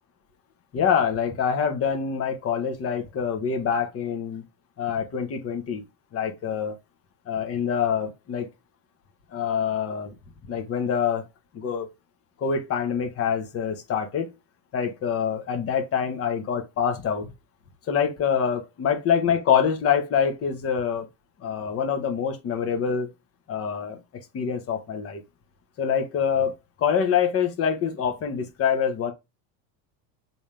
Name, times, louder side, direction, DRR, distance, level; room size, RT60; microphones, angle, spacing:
voice 1, 0.7-4.4 4.8-5.8 6.1-6.7 7.3-8.5 9.3-10.1 10.5-11.3 11.5-11.9 12.4-14.3 14.7-17.3 17.9-21.1 21.4-23.1 23.5-24.0 24.3-25.2 25.8-29.1, left 7 dB, 30° left, 1.6 m, -25 dB
6.9 x 3.8 x 5.2 m
supercardioid pair, 155°, 50 cm